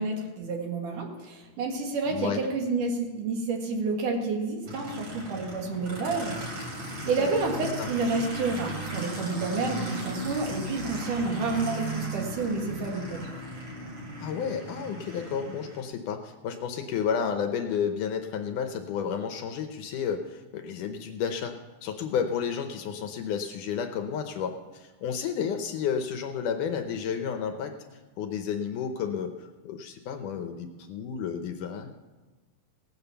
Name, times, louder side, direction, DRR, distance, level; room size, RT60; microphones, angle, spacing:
voice 1, 0.0-6.7 7.0-13.3, right 3 dB, 65° right, 1 dB, 3.3 m, -29 dB
Aircraft, 4.7-15.8, right 1 dB, 45° right, 4.6 m, -37 dB
voice 2, 14.2-27.8 28.2-31.9, left 7 dB, 75° left, 6 dB, 2.1 m, -31 dB
17.5 x 8.9 x 6.9 m, 1.2 s
omnidirectional pair, 4.1 m